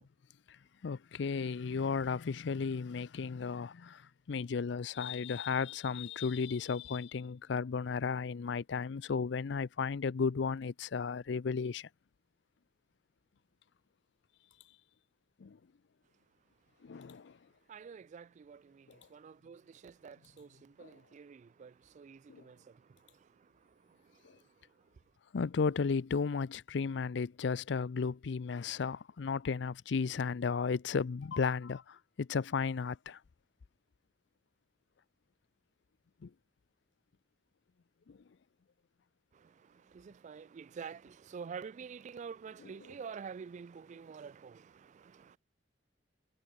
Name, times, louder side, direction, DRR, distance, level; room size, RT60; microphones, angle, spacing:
voice 1, 0.8-4.0 4.3-11.9 15.4-15.6 16.8-17.3 20.8-20.9 22.3-22.4 25.3-33.2 36.2-36.3 38.1-38.2 42.6-42.7, left 5 dB, 70° left, 0.5 m, -34 dB
voice 2, 17.7-22.8 39.3-39.5 39.9-45.4, right 6 dB, 40° right, 0.3 m, -48 dB
head